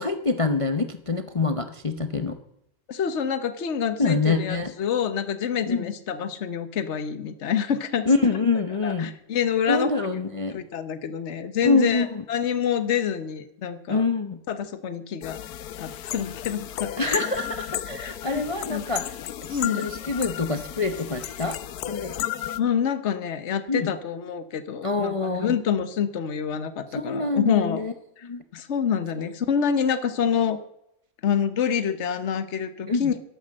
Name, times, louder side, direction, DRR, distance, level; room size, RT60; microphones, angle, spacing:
voice 1, 0.0-2.4 4.0-4.7 5.7-5.9 8.1-9.1 9.7-10.6 11.6-12.2 13.9-14.4 17.0-19.2 19.4-21.6 21.9-22.1 23.7-23.9 24.8-25.6 26.9-27.9 28.2-28.4 32.9-33.1, left 3 dB, 30° left, 8 dB, 0.7 m, -25 dB
voice 2, 2.9-8.1 8.8-10.1 10.5-14.0 14.5-15.4 15.8-17.3 18.0-18.4 18.7-18.8 19.5-19.8 22.6-27.8 28.2-28.3 28.5-30.6 31.2-33.1, left 8 dB, 55° left, 11 dB, 1.3 m, -27 dB
sound 1, 15.2-22.6, left 12 dB, 85° left, 1.2 m, -34 dB
12.0 x 11.5 x 7.6 m, 0.81 s
omnidirectional pair, 1.6 m